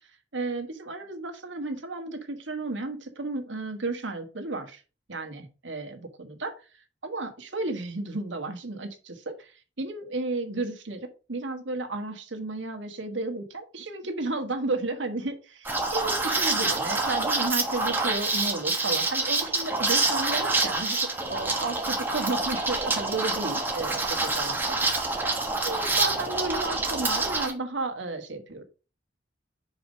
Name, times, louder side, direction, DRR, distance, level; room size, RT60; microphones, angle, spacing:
voice 1, 0.3-4.8 5.1-6.5 7.0-21.0 21.3-24.6 25.0-25.2 25.6-28.6, right 3 dB, 75° right, 6 dB, 1.4 m, -33 dB
Liquid, 15.7-27.5, right 3 dB, 10° right, 1.2 m, -27 dB
5.4 x 4.8 x 5.1 m, 0.34 s
head